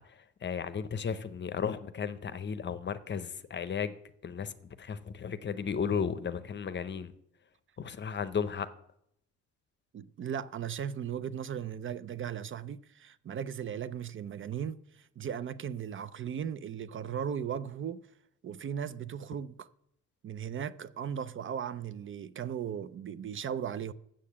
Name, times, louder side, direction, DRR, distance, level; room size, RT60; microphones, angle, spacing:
voice 1, 0.1-4.0 4.2-7.1 7.8-8.7, left 6 dB, 35° left, 0.7 m, -34 dB
voice 2, 9.9-18.1 18.4-19.7 20.2-23.9, right 8 dB, 45° right, 0.5 m, -37 dB
7.4 x 6.6 x 7.3 m
cardioid pair, 90°, 30 cm